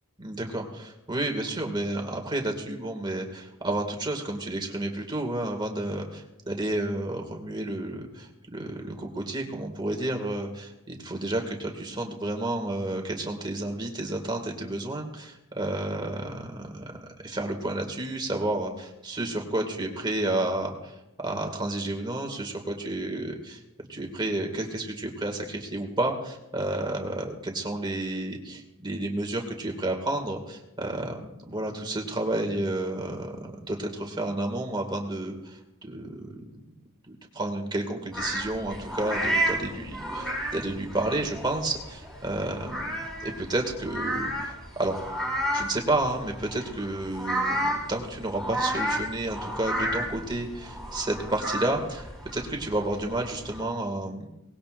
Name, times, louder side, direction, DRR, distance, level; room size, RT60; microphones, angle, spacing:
voice 1, 0.2-20.9 21.2-23.6 23.9-36.6 37.1-45.0 45.5-54.3, right 1 dB, 20° right, 3 dB, 2.2 m, -31 dB
sound 1, 38.1-53.6, right 1 dB, ahead, 5.3 m, -32 dB
22.5 x 19.5 x 2.6 m, 0.93 s
head